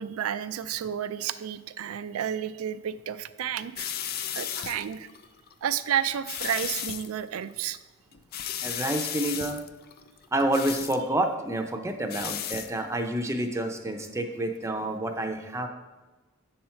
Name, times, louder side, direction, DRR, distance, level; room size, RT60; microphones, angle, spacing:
voice 1, 0.0-4.0 4.2-5.1 5.6-7.8, right 9 dB, 80° right, 12 dB, 0.4 m, -31 dB
sound 1, 3.8-5.5 6.0-7.1 7.4-7.8 8.1-11.0 11.9-12.7 13.0-13.3, left 10 dB, 45° left, 0.4 m, -34 dB
voice 2, 8.6-9.6 10.3-15.7, right 1 dB, 15° right, 5 dB, 0.5 m, -28 dB
7.8 x 4.4 x 5.6 m, 1.2 s
head